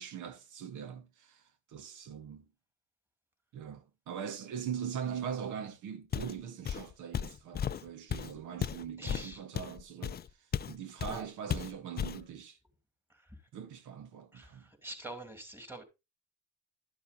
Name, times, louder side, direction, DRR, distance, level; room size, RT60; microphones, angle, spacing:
voice 1, 0.0-2.5 3.5-12.6 13.5-14.7, right 8 dB, 80° right, 1.0 m, -41 dB
Walk footsteps, 6.1-6.4 6.6-10.7 11.0-11.2 11.5-12.2, left 8 dB, 35° left, 0.4 m, -35 dB
voice 2, 9.0-9.4 13.1-13.4 14.3-15.8, right 1 dB, 5° right, 2.5 m, -46 dB
12.0 x 7.2 x 2.6 m
cardioid pair, 90°, 30 cm